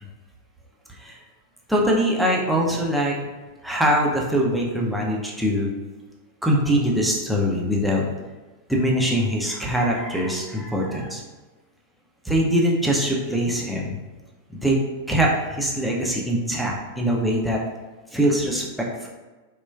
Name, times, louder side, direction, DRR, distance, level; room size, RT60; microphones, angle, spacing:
voice 1, 1.7-3.2 3.6-5.7 6.4-8.0 8.7-11.2 12.3-14.0 14.6-14.8 15.1-17.6 18.1-19.1, equal, ahead, -3 dB, 0.5 m, -22 dB
3.2 x 2.2 x 2.2 m, 1.2 s
figure-of-eight pair, 90°, 0 cm